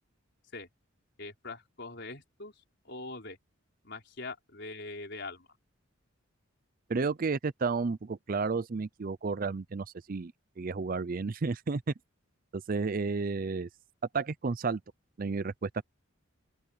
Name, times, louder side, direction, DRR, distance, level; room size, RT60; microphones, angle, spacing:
voice 1, 1.2-2.5 2.8-3.4 3.8-5.5, left 3 dB, 55° left, 4.9 m, -42 dB
voice 2, 6.9-10.3 10.6-11.8 12.5-13.7 14.1-14.8 15.2-15.8, right 4 dB, 40° right, 0.5 m, -32 dB
open air
head